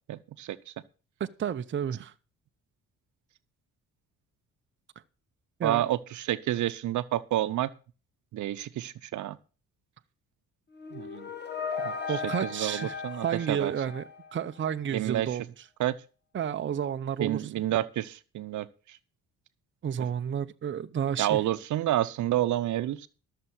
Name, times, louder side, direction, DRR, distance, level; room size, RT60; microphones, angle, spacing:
voice 1, 0.1-0.6 5.6-7.7 8.3-9.4 10.9-11.3 11.8-13.7 14.9-15.3 15.8-15.9 17.2-18.7 21.2-23.1, right 13 dB, 70° right, 0.8 m, -29 dB
voice 2, 1.2-2.1 5.6-5.9 12.1-13.0 13.2-14.0 14.3-15.5 16.3-17.7 19.8-21.4, right 8 dB, 40° right, 0.7 m, -31 dB
sound 1, 10.7-14.7, left 5 dB, 35° left, 1.8 m, -37 dB
13.0 x 6.8 x 6.1 m
cardioid pair, 85°, 31 cm